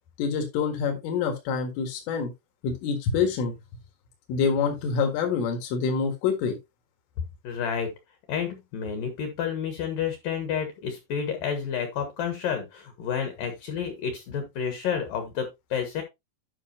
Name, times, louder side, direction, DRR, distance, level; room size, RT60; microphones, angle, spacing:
voice 1, 0.2-2.3 2.6-3.5 4.3-6.6, left 5 dB, 80° left, 3 dB, 4.3 m, -26 dB
voice 2, 7.4-7.9 8.3-16.0, left 7 dB, 60° left, 6 dB, 2.4 m, -30 dB
11.0 x 6.0 x 2.8 m, 0.21 s
omnidirectional pair, 5.7 m